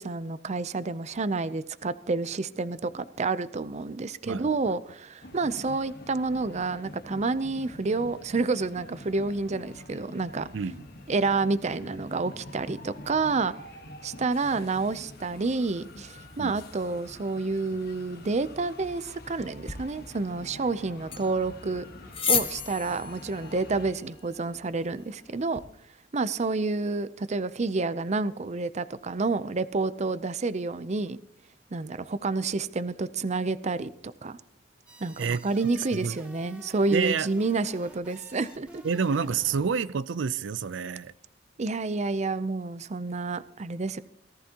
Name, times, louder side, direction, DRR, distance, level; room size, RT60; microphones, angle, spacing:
voice 1, 0.0-10.5 11.1-13.5 14.0-21.8 22.3-25.6 26.1-31.2 31.7-34.4 35.0-38.8 41.6-44.0, right 3 dB, 40° right, 0.6 m, -29 dB
sound 1, 5.2-23.9, left 1 dB, 60° left, 1.4 m, -46 dB
sound 2, 19.6-25.6, left 6 dB, 30° left, 1.3 m, -35 dB
sound 3, 34.9-39.7, right 1 dB, 5° right, 2.1 m, -50 dB
voice 2, 36.9-37.3 38.8-41.1, right 5 dB, 85° right, 0.5 m, -28 dB
18.0 x 14.0 x 2.9 m
head